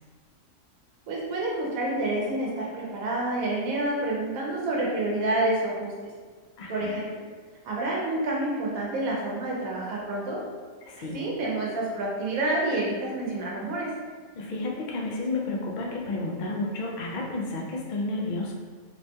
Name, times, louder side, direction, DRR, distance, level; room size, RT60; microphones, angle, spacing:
voice 1, 1.1-5.9 6.7-7.1 7.6-10.4 10.9-13.9, right 2 dB, 90° right, -3 dB, 1.1 m, -28 dB
voice 2, 6.6-7.0 10.8-11.2 14.3-18.5, left 2 dB, 90° left, -2 dB, 0.4 m, -31 dB
3.0 x 2.2 x 2.6 m, 1.5 s
omnidirectional pair, 1.4 m